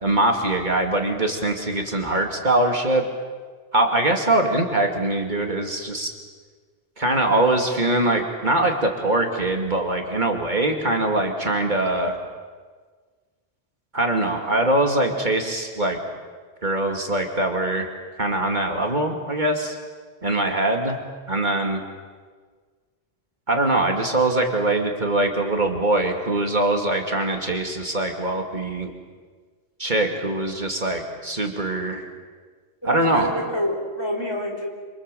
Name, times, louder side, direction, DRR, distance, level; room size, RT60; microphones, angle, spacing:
voice 1, 0.0-3.0 3.7-6.1 7.0-12.2 13.9-16.0 16.6-17.9 18.2-19.8 20.2-21.0 21.3-21.8 23.5-28.9 29.8-32.0 32.8-33.3, right 2 dB, 45° right, 3 dB, 2.7 m, -22 dB
voice 2, 32.8-34.7, equal, 25° left, 1 dB, 4.0 m, -27 dB
27.5 x 26.5 x 7.7 m, 1.5 s
omnidirectional pair, 1.1 m